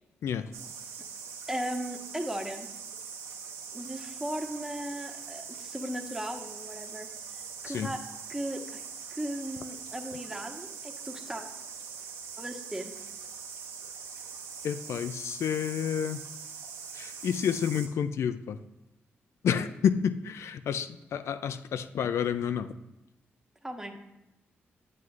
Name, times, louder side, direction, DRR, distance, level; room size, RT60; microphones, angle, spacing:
sound 1, 0.5-17.9, right 6 dB, 85° right, 1.0 m, -42 dB
voice 1, 1.5-2.7 3.7-7.1 7.6-8.0 8.3-8.8 9.1-11.4 12.4-12.9 23.6-24.0, right 1 dB, 10° right, 3 dB, 1.1 m, -36 dB
voice 2, 14.6-16.2 16.9-18.6 19.4-22.7, left 8 dB, 75° left, 11 dB, 0.3 m, -29 dB
9.3 x 7.6 x 2.4 m, 0.93 s
supercardioid pair, 50°, 5 cm